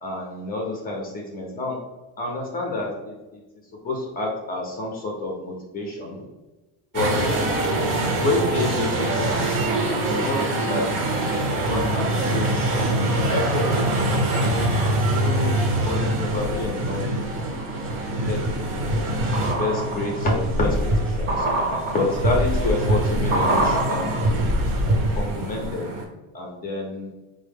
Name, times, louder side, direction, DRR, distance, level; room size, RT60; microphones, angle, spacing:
voice 1, 0.0-1.8 2.2-3.4 3.8-6.2 6.9-7.3 8.0-9.6 10.1-10.9 11.3-12.7 13.3-14.5 15.1-17.0 17.8-18.0 18.3-19.1 19.6-21.5 21.9-24.5 25.1-25.9 26.3-27.1, left 2 dB, 25° left, -1 dB, 0.4 m, -29 dB
sound 1, 6.9-26.0, right 1 dB, 85° right, 1.0 m, -25 dB
sound 2, 16.4-17.0 17.5-25.4 25.6-25.7, right 1 dB, 45° right, 0.6 m, -24 dB
3.9 x 2.1 x 3.3 m, 1.1 s
cardioid pair, 165°, 41 cm